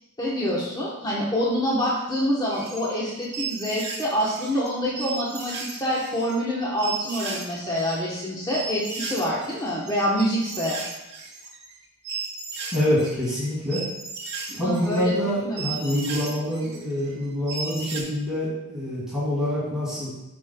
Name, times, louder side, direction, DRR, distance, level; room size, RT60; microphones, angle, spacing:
voice 1, 0.2-10.8 14.5-15.1 15.4-15.7, equal, 20° left, -5 dB, 1.0 m, -26 dB
sound 1, 2.5-2.9 3.2-4.7 4.9-6.3 6.8-7.5 7.7-18.0, right 4 dB, 50° right, 1.2 m, -35 dB
voice 2, 12.7-13.8 14.5-20.1, left 1 dB, 5° right, -10 dB, 1.9 m, -26 dB
8.3 x 5.2 x 2.3 m, 0.90 s
head